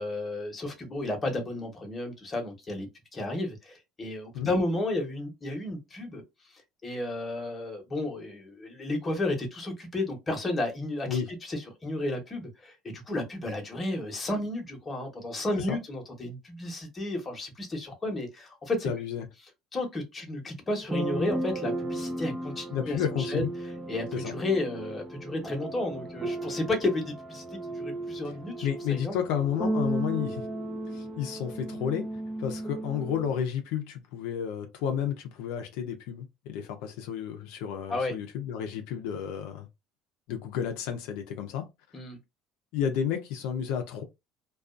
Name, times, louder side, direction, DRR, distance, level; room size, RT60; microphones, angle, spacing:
voice 1, 0.0-6.2 6.8-18.9 19.7-23.0 23.3-23.5 23.9-27.4 27.7-29.2 37.9-38.1 41.9-42.2, left 2 dB, 25° left, 1.0 m, -32 dB
voice 2, 18.8-19.3 22.7-23.5 24.1-24.3 28.6-30.5 30.9-32.1 32.4-39.7 40.3-41.7 42.7-44.0, left 8 dB, 80° left, 0.5 m, -31 dB
sound 1, 20.8-33.4, right 1 dB, 15° right, 0.6 m, -35 dB
2.4 x 2.3 x 2.4 m
supercardioid pair, 105°, 0 cm